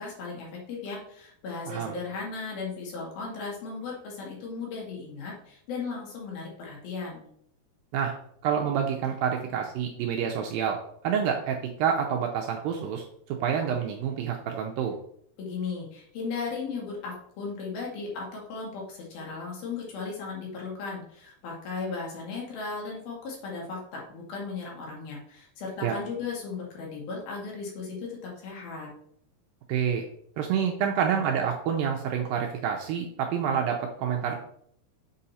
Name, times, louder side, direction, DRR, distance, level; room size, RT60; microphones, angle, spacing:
voice 1, 0.0-7.2 15.4-28.9, left 4 dB, 65° left, -3 dB, 3.8 m, -36 dB
voice 2, 8.4-10.8 11.0-15.0 25.8-25.9 29.7-30.0 30.4-34.4, right 7 dB, 75° right, 2 dB, 2.2 m, -28 dB
7.7 x 5.1 x 4.2 m, 0.66 s
omnidirectional pair, 4.7 m